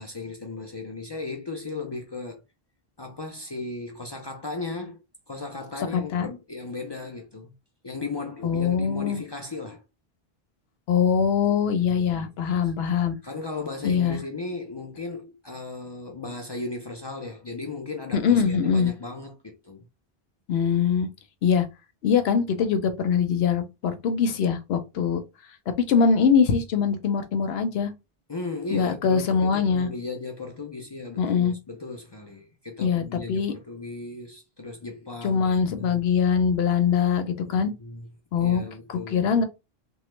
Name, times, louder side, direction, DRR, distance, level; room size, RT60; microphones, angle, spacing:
voice 1, 0.0-2.4 3.0-7.5 7.8-9.8 11.8-19.9 28.3-36.0 37.5-38.1 38.4-39.4, left 3 dB, 40° left, 0.3 m, -36 dB
voice 2, 5.9-6.3 8.4-9.2 10.9-13.2 13.8-14.2 18.1-18.9 20.5-21.1 21.4-21.7 22.0-25.2 25.9-27.9 28.7-29.9 31.2-31.5 32.8-33.5 35.2-37.7 38.3-38.6 38.9-39.4, left 6 dB, 85° left, 0.9 m, -23 dB
3.0 x 2.1 x 3.1 m
omnidirectional pair, 1.0 m